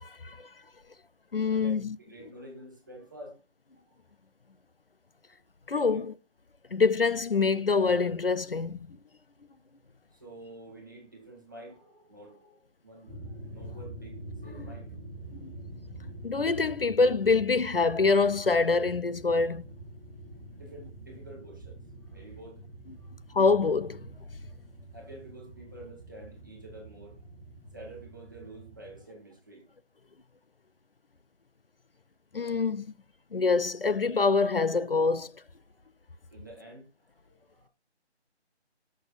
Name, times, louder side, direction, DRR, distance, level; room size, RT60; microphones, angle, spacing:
voice 1, 0.0-0.5 1.3-2.0 5.7-6.1 6.7-9.0 15.4-15.5 16.2-19.6 23.3-24.1 32.3-32.8 33.3-35.3, left 4 dB, 55° left, 0.4 m, -25 dB
voice 2, 1.5-3.4 3.8-4.0 5.7-6.0 10.1-15.0 20.5-21.8 22.1-22.7 23.0-23.2 24.9-27.3 27.7-29.6 35.7-35.8 36.3-37.7, right 1 dB, 20° right, 1.5 m, -49 dB
sound 1, 13.1-29.0, right 1 dB, ahead, 2.1 m, -46 dB
10.0 x 6.4 x 2.5 m
figure-of-eight pair, 180°, 34 cm